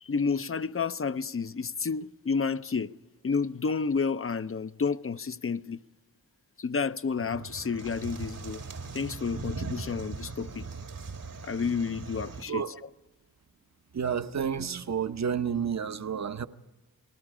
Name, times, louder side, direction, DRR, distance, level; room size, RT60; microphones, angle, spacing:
voice 1, 0.0-2.9 3.2-5.8 6.6-8.6 8.9-10.7 11.4-12.6, left 5 dB, 40° left, 0.6 m, -30 dB
sound 1, 7.2-12.4, right 4 dB, 65° right, 1.7 m, -39 dB
voice 2, 13.9-16.5, right 7 dB, 50° right, 0.9 m, -30 dB
29.5 x 19.5 x 4.9 m
cardioid pair, 70°, 35 cm